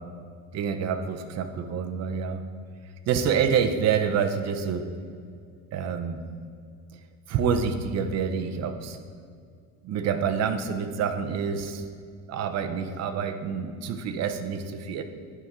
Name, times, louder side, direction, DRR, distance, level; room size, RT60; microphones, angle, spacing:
voice 1, 0.5-2.4 3.1-4.9 5.7-6.2 7.3-9.0 9.8-11.8 12.3-15.0, right 6 dB, 40° right, 8 dB, 0.5 m, -27 dB
9.4 x 3.7 x 5.5 m, 2.2 s
cardioid pair, 170°, 41 cm